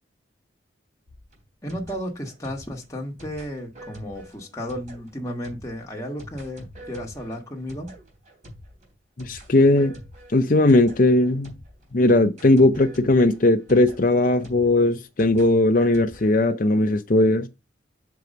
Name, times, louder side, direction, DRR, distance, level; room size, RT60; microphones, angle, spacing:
sound 1, 1.1-11.9 12.4-16.3, equal, 40° right, 3.5 m, -45 dB
voice 1, 1.6-7.9, equal, 15° left, 1.4 m, -33 dB
voice 2, 9.2-10.0 10.3-11.5 11.9-17.5, left 2 dB, 45° left, 0.6 m, -18 dB
6.8 x 4.7 x 5.2 m
head